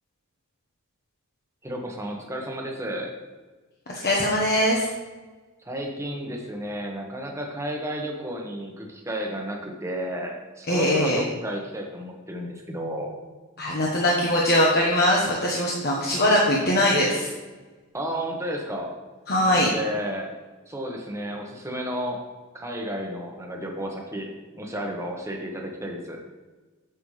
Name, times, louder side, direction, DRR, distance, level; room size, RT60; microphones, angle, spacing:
voice 1, 1.6-3.2 5.6-13.1 17.9-18.9 19.4-20.3 20.7-22.3 22.5-24.3 24.6-26.2, equal, 15° right, 0 dB, 1.2 m, -32 dB
voice 2, 3.9-4.9 10.7-11.2 13.6-17.3 19.3-19.7, left 1 dB, 45° left, -4 dB, 1.2 m, -21 dB
9.1 x 7.2 x 3.3 m, 1.3 s
head